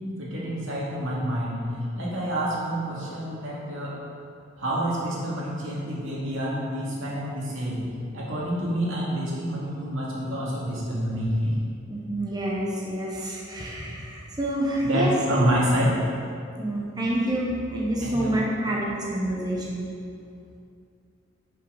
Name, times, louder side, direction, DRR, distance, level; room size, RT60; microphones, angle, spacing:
voice 1, 0.2-3.9 4.6-7.8 8.1-11.6 14.8-16.0 18.0-18.4, equal, 70° right, -6 dB, 2.3 m, -27 dB
voice 2, 11.9-15.1 16.6-19.9, right 1 dB, 20° right, -4 dB, 1.0 m, -28 dB
11.0 x 5.9 x 4.0 m, 2.5 s
head